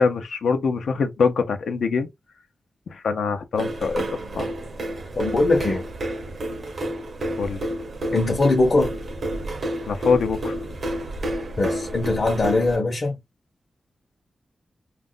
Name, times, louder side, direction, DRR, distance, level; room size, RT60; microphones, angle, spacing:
voice 1, 0.0-2.1 2.9-4.0 4.3-4.5 7.4-7.6 9.9-10.6, left 5 dB, 90° left, 0.6 m, -23 dB
sound 1, 3.6-12.8, right 1 dB, 55° right, 0.6 m, -30 dB
voice 2, 5.2-5.8 8.1-8.9 11.6-13.2, left 2 dB, 45° left, 0.7 m, -21 dB
2.4 x 2.1 x 3.7 m
wide cardioid pair, 135°, 0 cm